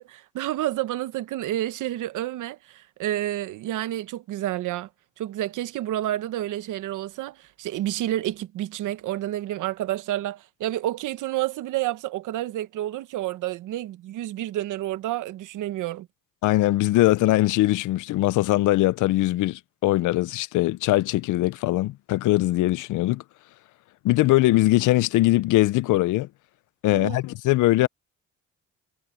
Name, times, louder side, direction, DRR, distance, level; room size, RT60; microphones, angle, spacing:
voice 1, 0.0-4.9 5.2-16.1 26.9-27.2, right 14 dB, 85° right, 1.1 m, -29 dB
voice 2, 16.4-23.2 24.0-26.3 26.8-27.9, left 17 dB, 85° left, 0.6 m, -21 dB
cardioid pair, 90°, 30 cm